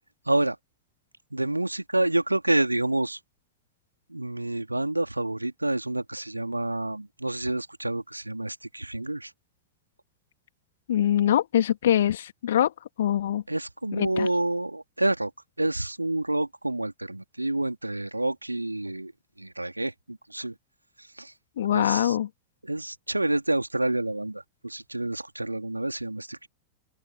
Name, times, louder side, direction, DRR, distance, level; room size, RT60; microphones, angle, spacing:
voice 1, 0.3-0.6 1.3-3.2 4.1-9.3 13.5-15.3 15.6-19.1 19.4-20.5 21.2-21.3 21.7-22.2 22.6-26.5, right 2 dB, 85° right, 2.8 m, -28 dB
voice 2, 10.9-12.7 13.0-13.4 13.9-14.3 21.6-22.3, left 11 dB, 60° left, 2.3 m, -23 dB
open air
figure-of-eight pair, 90°, 0 cm